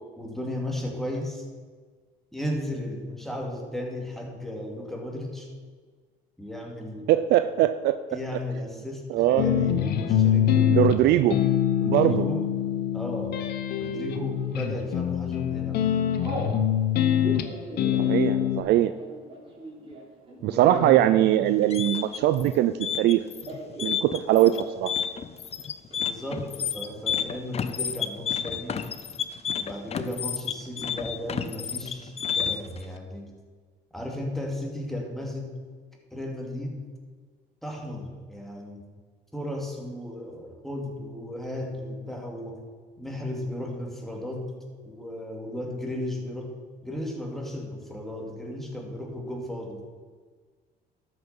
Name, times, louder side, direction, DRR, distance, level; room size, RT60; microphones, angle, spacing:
voice 1, 0.2-1.5 2.3-5.5 6.4-7.1 8.1-11.3 11.8-12.5 12.9-13.4 13.8-15.9 17.9-18.7 20.4-21.2 26.0-28.8 29.6-33.3 33.9-35.5 36.1-36.8 37.6-38.9 39.3-42.7 43.0-44.5 44.9-46.6 46.8-49.8, left 1 dB, ahead, 0 dB, 2.3 m, -35 dB
voice 2, 7.1-7.9 9.1-9.5 10.7-11.4 11.8-12.2 18.1-18.9 20.4-23.2 23.8-24.9, right 13 dB, 75° right, 11 dB, 0.4 m, -21 dB
sound 1, 9.4-18.6, left 10 dB, 70° left, 0.9 m, -24 dB
Telephone, 14.0-14.5 15.1-15.4 15.7-16.5 17.1-22.6 22.9-24.0 24.2-24.7 25.0-25.1 25.4-25.9, right 1 dB, 30° right, 3.4 m, -39 dB
sound 2, 21.5-32.8, left 8 dB, 40° left, 0.6 m, -31 dB
13.0 x 6.0 x 5.5 m, 1.6 s
cardioid pair, 110°, 17 cm